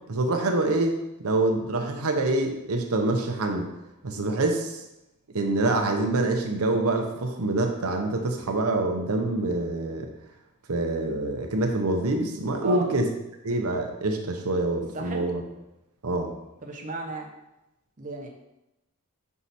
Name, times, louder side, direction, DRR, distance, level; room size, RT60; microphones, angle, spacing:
voice 1, 0.1-0.9 1.2-3.7 4.0-4.8 5.3-10.1 10.7-13.1 13.4-15.4 16.0-16.3, right 2 dB, 85° right, 3 dB, 0.8 m, -26 dB
voice 2, 14.9-15.3 16.6-17.3 18.0-18.3, right 3 dB, 35° right, 1 dB, 0.9 m, -34 dB
5.6 x 4.8 x 4.2 m, 0.92 s
head